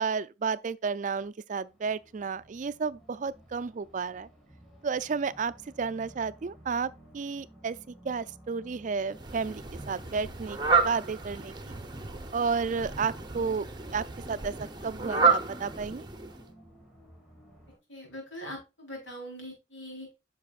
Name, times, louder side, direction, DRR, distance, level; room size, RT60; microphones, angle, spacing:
voice 1, 0.0-4.3 4.8-7.8 8.0-11.8 12.3-13.7 13.9-14.5 14.8-16.1, right 5 dB, 40° right, 0.4 m, -32 dB
sound 1, 1.6-17.8, right 1 dB, ahead, 2.4 m, -55 dB
Fowl, 9.1-16.5, right 4 dB, 25° right, 0.8 m, -30 dB
voice 2, 17.9-20.1, equal, 90° left, 3.9 m, -42 dB
9.3 x 5.9 x 2.4 m
head